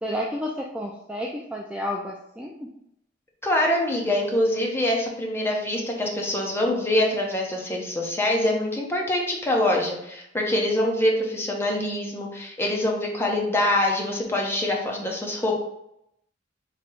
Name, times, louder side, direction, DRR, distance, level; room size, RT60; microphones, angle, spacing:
voice 1, 0.0-2.7, equal, 5° right, -1 dB, 0.3 m, -31 dB
voice 2, 3.4-15.5, left 1 dB, 10° left, -1 dB, 0.7 m, -24 dB
3.1 x 2.9 x 4.5 m, 0.79 s
head